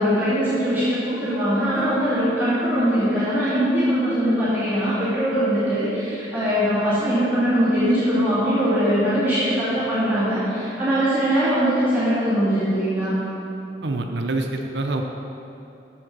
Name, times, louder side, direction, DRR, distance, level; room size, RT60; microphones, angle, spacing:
voice 1, 0.0-13.2, equal, 10° right, -13 dB, 2.3 m, -21 dB
voice 2, 13.8-15.0, right 2 dB, 80° right, 3 dB, 0.6 m, -26 dB
7.4 x 7.3 x 6.1 m, 2.8 s
head